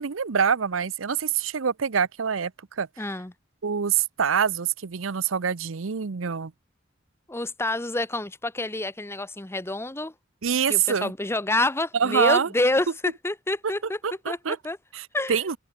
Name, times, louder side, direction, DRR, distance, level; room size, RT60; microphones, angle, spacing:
voice 1, 0.0-2.9 3.6-6.5 10.4-11.1 11.9-12.5 14.0-14.6 14.9-15.6, right 7 dB, 90° right, 0.7 m, -25 dB
voice 2, 3.0-3.3 7.3-10.1 10.7-12.9 13.2-14.0 14.3-14.4 14.6-14.8 15.1-15.4, left 2 dB, 15° left, 1.1 m, -27 dB
head